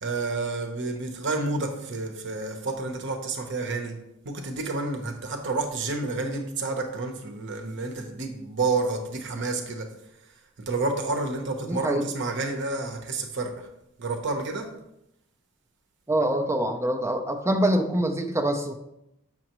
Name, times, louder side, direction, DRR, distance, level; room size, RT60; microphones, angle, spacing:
voice 1, 0.0-4.0 4.2-9.9 10.6-13.7 14.0-14.7, right 3 dB, 55° right, 4 dB, 0.9 m, -30 dB
voice 2, 11.6-12.0 16.1-18.7, right 1 dB, 10° right, 5 dB, 0.6 m, -25 dB
7.7 x 6.0 x 3.0 m, 0.83 s
head